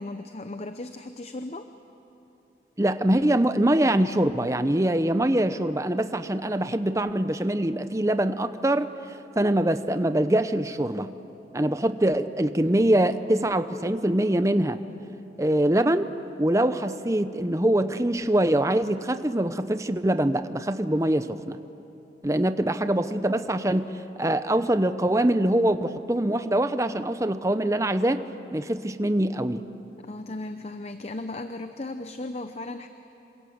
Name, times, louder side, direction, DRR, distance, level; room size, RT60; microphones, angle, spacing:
voice 1, 0.0-1.7 30.0-32.9, left 2 dB, 35° left, 8 dB, 0.7 m, -36 dB
voice 2, 2.8-8.9 9.4-11.1 11.5-14.8 15.4-16.1 16.4-21.6 22.2-23.9 24.2-28.2 28.5-29.6, right 1 dB, 15° right, 11 dB, 0.7 m, -23 dB
28.0 x 26.0 x 7.9 m, 2.9 s
head